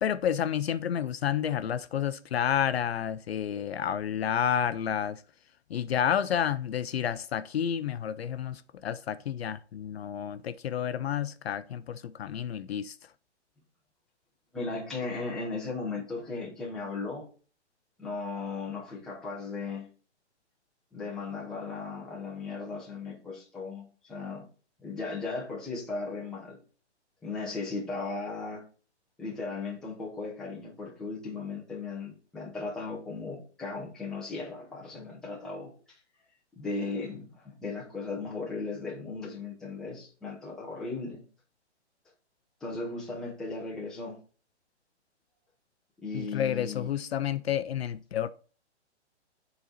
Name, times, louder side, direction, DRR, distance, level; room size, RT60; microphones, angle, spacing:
voice 1, 0.0-5.2 5.7-13.0 46.1-48.3, left 9 dB, 60° left, 0.4 m, -30 dB
voice 2, 14.5-17.3 18.0-19.9 20.9-24.5 24.8-26.6 27.2-28.6 29.2-36.0 36.5-41.2 42.6-44.2 46.0-46.9, left 3 dB, ahead, 0.7 m, -36 dB
7.6 x 4.0 x 4.1 m
hypercardioid pair, 160°, 35 cm